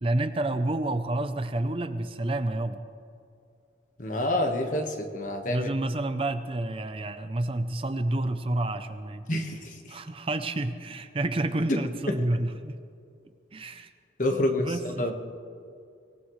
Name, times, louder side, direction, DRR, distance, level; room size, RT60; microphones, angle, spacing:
voice 1, 0.0-2.8 5.5-9.3 9.9-12.8 13.5-13.9 14.3-15.1, right 2 dB, 30° right, 9 dB, 0.6 m, -29 dB
voice 2, 4.0-5.7 9.3-9.8 14.2-15.1, left 1 dB, 45° left, 3 dB, 1.4 m, -28 dB
24.5 x 18.0 x 3.2 m, 2.4 s
head